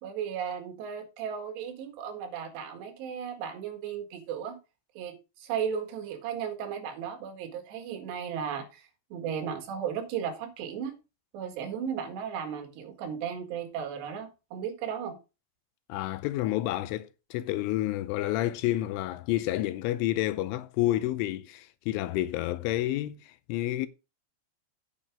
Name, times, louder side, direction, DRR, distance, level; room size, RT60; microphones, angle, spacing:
voice 1, 0.0-4.6 5.0-10.9 11.3-15.2, right 8 dB, 65° right, 3.7 m, -35 dB
voice 2, 15.9-23.9, left 15 dB, 80° left, 3.0 m, -29 dB
9.2 x 6.2 x 4.9 m
omnidirectional pair, 5.7 m